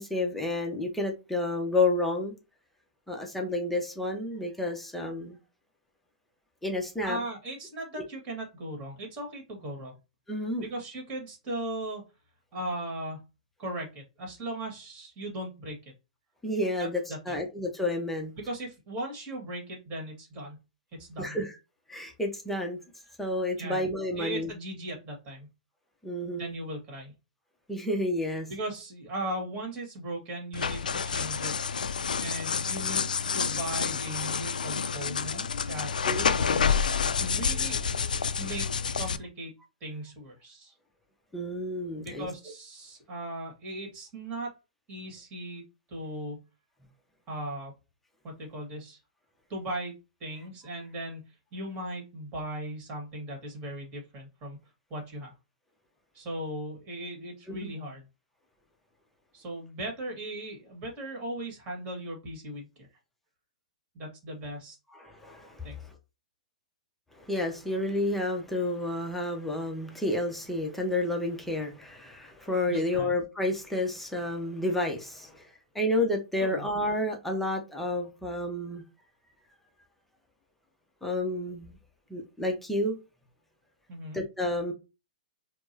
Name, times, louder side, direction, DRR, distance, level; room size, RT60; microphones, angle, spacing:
voice 1, 0.0-2.3 3.1-5.4 6.6-7.2 10.3-10.6 16.4-18.3 21.2-21.5 21.9-22.8 23.2-24.5 26.0-26.5 27.7-28.5 36.1-36.3 41.3-42.3 57.5-57.7 65.0-65.8 67.1-78.8 81.0-81.8 82.1-83.0 84.1-84.7, left 1 dB, 5° left, 0.6 m, -30 dB
voice 2, 7.0-9.9 10.6-12.0 12.5-13.2 13.6-15.9 16.8-17.4 18.4-20.6 21.0-21.4 23.6-23.8 24.2-25.5 26.4-27.1 28.5-31.5 32.2-36.8 37.2-37.9 38.4-39.5 39.8-40.8 42.0-44.5 44.9-45.6 45.9-46.4 47.3-47.7 48.2-49.0 49.5-49.9 50.2-51.2 51.5-54.6 54.9-55.3 56.1-58.1 59.3-62.7 63.9-64.8 65.6-65.8 72.7-73.1 76.4-76.7 83.9-84.2, right 1 dB, 30° right, 1.7 m, -38 dB
sound 1, 30.5-39.2, left 6 dB, 80° left, 0.3 m, -29 dB
4.4 x 2.0 x 2.8 m
hypercardioid pair, 120°, 4 cm